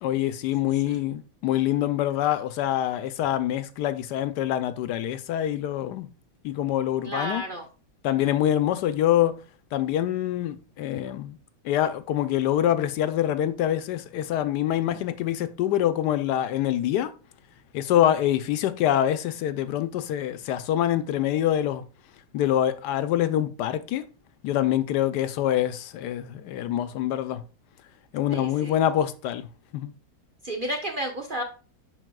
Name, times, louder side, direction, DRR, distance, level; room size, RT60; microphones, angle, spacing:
voice 1, 0.0-6.1 6.4-7.4 8.0-9.4 9.7-11.4 11.6-17.1 17.7-21.8 22.3-24.0 24.4-27.4 28.1-29.5 29.7-29.9, left 11 dB, 90° left, 1.2 m, -25 dB
voice 2, 7.0-7.7 28.3-28.8 30.4-31.4, right 1 dB, 45° right, 0.7 m, -32 dB
11.0 x 4.2 x 2.3 m
omnidirectional pair, 1.7 m